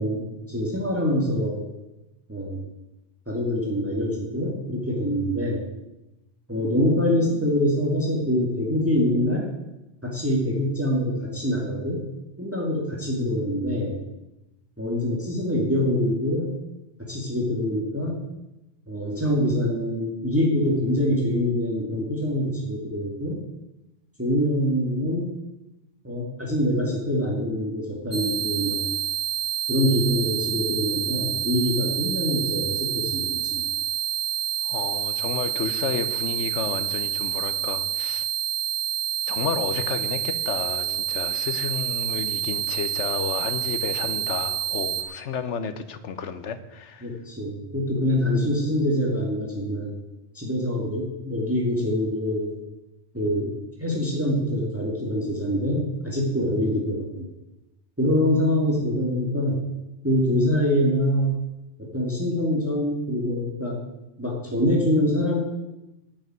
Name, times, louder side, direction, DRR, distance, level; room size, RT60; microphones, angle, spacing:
voice 1, 0.0-1.6 2.3-2.6 3.3-5.7 6.5-9.5 10.0-12.0 12.4-14.0 14.8-16.6 17.0-18.2 18.9-23.4 24.2-25.3 26.0-28.8 29.7-33.6 47.0-49.9 50.3-52.5 53.1-53.5 53.8-57.3 58.0-59.7 60.0-61.4 61.8-63.8 64.2-65.4, equal, 10° right, -1 dB, 2.3 m, -25 dB
sound 1, 28.1-45.0, right 10 dB, 40° right, 1.4 m, -28 dB
voice 2, 34.6-38.2 39.3-47.1, left 6 dB, 75° left, 11 dB, 1.3 m, -31 dB
11.5 x 7.0 x 9.4 m, 0.96 s
omnidirectional pair, 1.2 m